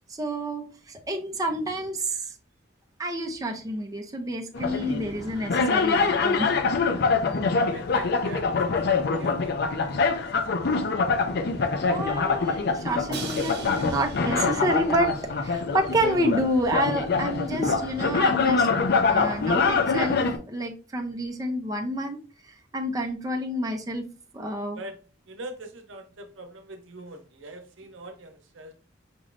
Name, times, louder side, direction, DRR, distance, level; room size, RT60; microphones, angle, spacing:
voice 1, 0.1-2.3 3.0-6.5 11.8-15.1 15.4-18.7 19.1-22.2 22.7-24.0 24.3-24.8, equal, 20° right, 0.5 m, -29 dB
sound 1, 4.5-20.4, left 4 dB, 55° left, 0.5 m, -25 dB
voice 2, 7.2-10.3 10.5-10.8 11.5-12.1 24.8-28.7, right 2 dB, 85° right, 0.8 m, -44 dB
Crash cymbal, 13.1-15.1, right 5 dB, 55° right, 0.9 m, -40 dB
5.2 x 3.1 x 2.5 m
head